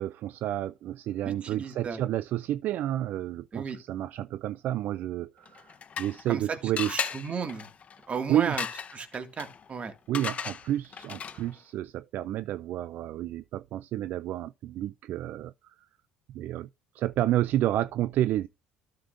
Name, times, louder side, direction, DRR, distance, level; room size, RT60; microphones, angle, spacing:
voice 1, 0.0-5.7 6.0-6.9 8.3-8.6 10.1-15.7 16.3-16.7 16.9-18.5, right 13 dB, 60° right, 0.3 m, -30 dB
voice 2, 1.2-2.0 3.5-3.8 6.3-7.7 8.1-8.6 8.9-9.9, right 5 dB, 35° right, 1.9 m, -34 dB
sound 1, 5.4-6.4 6.8-11.6, left 7 dB, 40° left, 0.8 m, -37 dB
13.0 x 6.6 x 2.5 m
supercardioid pair, 75°, 3 cm